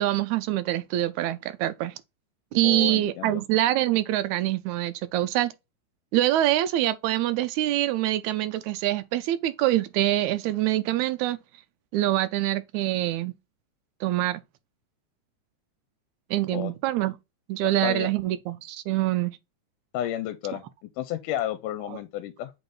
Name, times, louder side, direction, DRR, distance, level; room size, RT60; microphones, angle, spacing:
voice 1, 0.0-1.9 2.5-5.5 6.1-11.4 11.9-13.3 14.0-14.4 16.3-17.2 17.5-19.4 21.9-22.0, right 14 dB, 80° right, 1.8 m, -25 dB
voice 2, 2.6-3.4 16.5-16.7 17.8-18.1 19.9-22.5, left 12 dB, 85° left, 2.2 m, -32 dB
6.9 x 4.0 x 3.7 m
omnidirectional pair, 3.7 m